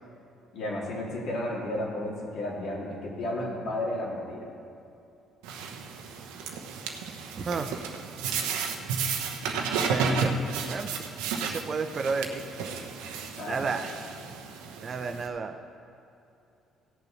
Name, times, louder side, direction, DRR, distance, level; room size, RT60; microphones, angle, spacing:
voice 1, 0.5-4.5 13.4-13.6, left 1 dB, 60° left, -4 dB, 3.5 m, -32 dB
sound 1, 5.4-15.3, right 5 dB, 75° right, 1.0 m, -32 dB
voice 2, 7.4-7.8 9.9-10.4 10.7-11.1 11.4-12.4 13.5-13.9 14.8-15.6, right 4 dB, 45° right, 7 dB, 1.0 m, -31 dB
16.5 x 6.8 x 5.9 m, 2.7 s
hypercardioid pair, 50°, 0 cm